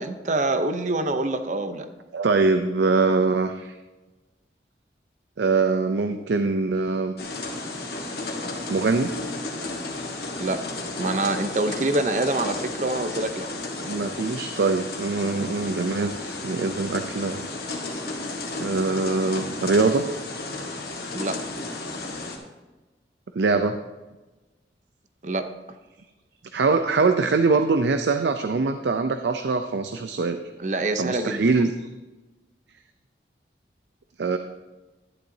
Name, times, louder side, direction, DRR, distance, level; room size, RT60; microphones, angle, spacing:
voice 1, 0.0-1.9 10.4-10.6 11.0-13.5 21.1-21.4 25.2-25.5 30.6-31.5, right 2 dB, 45° right, 9 dB, 0.7 m, -25 dB
voice 2, 2.1-3.7 5.4-7.1 8.7-9.1 13.8-17.4 18.6-20.1 23.3-23.8 26.5-30.4 31.0-31.7 34.2-34.4, right 4 dB, 80° right, 8 dB, 0.5 m, -23 dB
sound 1, 7.2-22.4, left 2 dB, 60° left, 1.5 m, -33 dB
11.5 x 10.5 x 2.7 m, 1.1 s
head